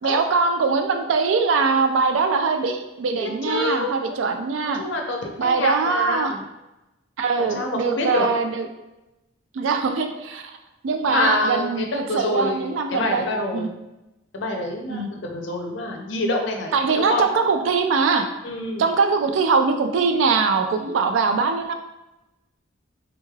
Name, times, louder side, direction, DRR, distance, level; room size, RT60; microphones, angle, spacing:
voice 1, 0.0-4.8 5.4-6.3 7.2-8.7 9.5-10.4 10.8-13.3 13.5-13.7 14.9-15.1 16.7-18.3 18.8-21.7, right 4 dB, 80° right, 6 dB, 0.3 m, -22 dB
voice 2, 3.2-3.9 4.6-6.4 7.4-8.3 11.1-13.7 14.3-17.2 18.4-18.8, left 2 dB, 70° left, 2 dB, 0.6 m, -27 dB
3.5 x 3.1 x 2.3 m, 0.97 s
head